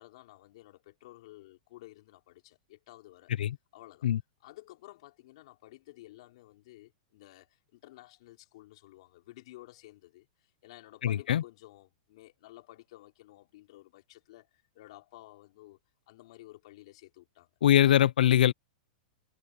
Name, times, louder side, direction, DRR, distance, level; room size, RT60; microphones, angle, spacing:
voice 1, 0.0-3.3 3.7-4.1 4.4-15.8 16.1-17.5, left 17 dB, 40° left, 6.1 m, -53 dB
voice 2, 11.0-11.4 17.6-18.5, left 11 dB, 85° left, 1.0 m, -22 dB
supercardioid pair, 180°, 5 cm